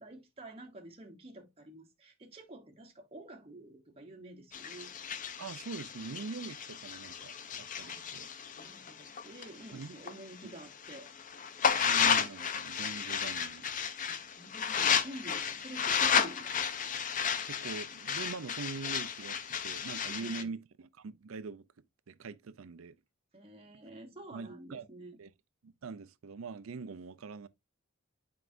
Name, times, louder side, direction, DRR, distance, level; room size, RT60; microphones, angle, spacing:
voice 1, 0.0-4.9 7.7-8.3 8.6-11.1 14.1-16.6 20.1-20.5 23.3-25.2, right 1 dB, 30° right, 1.0 m, -49 dB
sound 1, 4.5-10.1 10.5-20.4, left 7 dB, 40° left, 0.6 m, -33 dB
voice 2, 5.4-8.3 9.7-10.0 10.4-10.5 11.8-13.7 14.8-15.1 17.4-21.6 22.1-23.0 24.3-24.9 25.2-25.3 25.6-27.5, right 4 dB, 80° right, 0.5 m, -43 dB
7.8 x 4.7 x 2.6 m
head